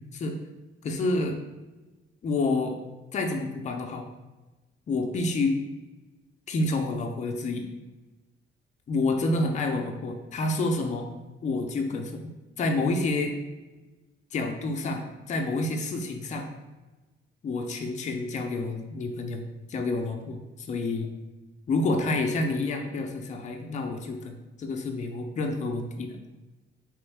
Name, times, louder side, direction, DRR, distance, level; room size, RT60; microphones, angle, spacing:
voice 1, 0.8-1.4 2.2-2.8 3.1-4.1 4.9-5.6 6.5-7.7 8.9-11.1 11.4-12.3 12.6-13.3 14.3-16.5 17.4-19.4 19.7-21.1 21.7-26.2, left 2 dB, 35° left, 3 dB, 0.5 m, -28 dB
3.6 x 3.1 x 3.4 m, 1.2 s
cardioid pair, 130°, 21 cm